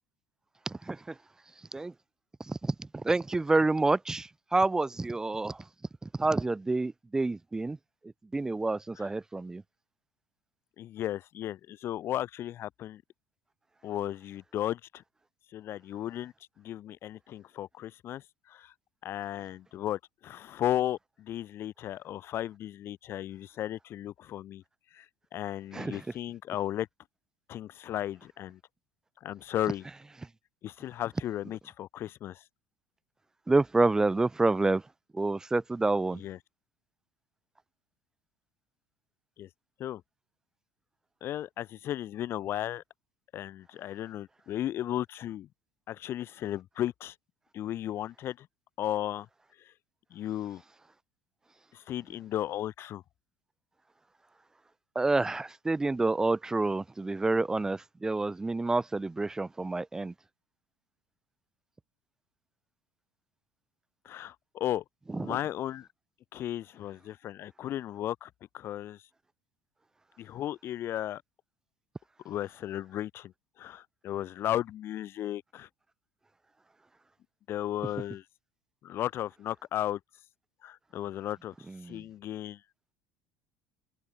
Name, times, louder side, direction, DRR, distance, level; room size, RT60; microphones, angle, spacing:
voice 1, 0.7-1.1 1.7-1.9 2.5-5.6 6.0-7.8 8.3-9.6 25.7-26.0 33.5-34.8 35.1-36.2 54.9-60.1 65.1-65.4 81.7-82.0, right 3 dB, 10° right, 0.9 m, -28 dB
voice 2, 10.8-13.0 13.8-15.0 15.5-18.7 19.0-24.6 24.9-25.0 25.3-26.9 27.5-28.6 29.2-29.8 30.6-32.4 36.1-36.4 39.4-39.5 39.8-40.0 41.2-42.8 43.3-45.5 45.9-47.1 47.5-48.5 48.8-49.3 50.1-50.6 51.7-53.0 64.0-64.8 65.1-65.9 66.3-69.0 70.2-71.2 72.2-73.3 73.6-75.7 77.5-78.2 78.8-80.0 80.6-81.5 81.9-82.6, left 12 dB, 45° left, 6.3 m, -35 dB
open air
cardioid pair, 140°, 6 cm